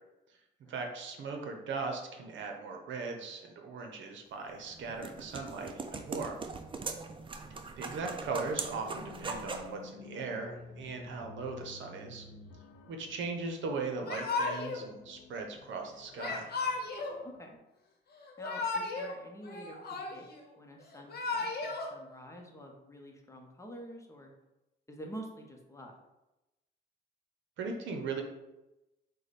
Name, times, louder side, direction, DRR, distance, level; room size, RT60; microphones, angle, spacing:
voice 1, 0.7-6.4 7.8-12.2 12.9-16.5 27.6-28.2, right 4 dB, 70° right, 3 dB, 0.8 m, -38 dB
sound 1, 4.5-9.7, right 4 dB, 25° right, 0.4 m, -41 dB
sound 2, 8.5-17.6, left 5 dB, 75° left, 0.5 m, -53 dB
Yell / Crying sobbing, 14.0-14.8 16.2-17.2 18.2-19.1 19.4-20.4 20.9-21.9, left 3 dB, 50° left, 0.9 m, -35 dB
voice 2, 17.2-17.6 18.4-20.3 20.6-24.3 24.9-25.9, equal, 15° left, 1 dB, 0.8 m, -48 dB
4.7 x 2.2 x 4.1 m, 0.97 s
cardioid pair, 90°, 20 cm